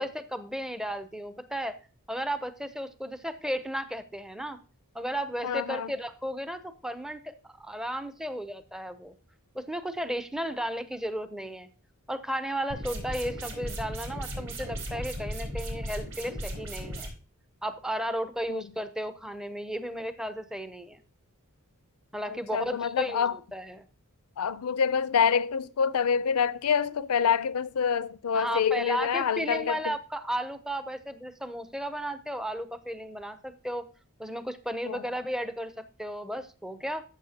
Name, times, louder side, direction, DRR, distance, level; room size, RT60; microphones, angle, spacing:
voice 1, 0.0-1.8 2.1-4.6 4.9-9.1 9.5-11.7 12.1-17.1 17.6-21.0 22.1-23.9 28.3-33.9 34.2-37.0, equal, 5° right, 0.5 m, -34 dB
voice 2, 5.4-5.9 18.5-18.7 22.3-23.4 24.4-30.0 34.9-35.1, left 7 dB, 75° left, 0.5 m, -27 dB
sound 1, 12.7-17.1, equal, 60° right, 4.2 m, -36 dB
13.5 x 7.2 x 2.8 m
head